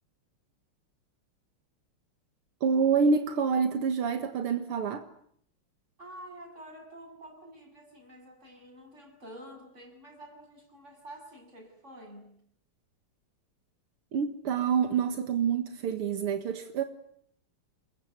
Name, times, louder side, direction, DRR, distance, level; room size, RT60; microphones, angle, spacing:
voice 1, 2.6-5.1 14.1-16.8, right 6 dB, 80° right, 2.4 m, -27 dB
voice 2, 6.0-12.3, right 1 dB, 30° right, 7.9 m, -48 dB
27.5 x 22.5 x 9.4 m
omnidirectional pair, 2.4 m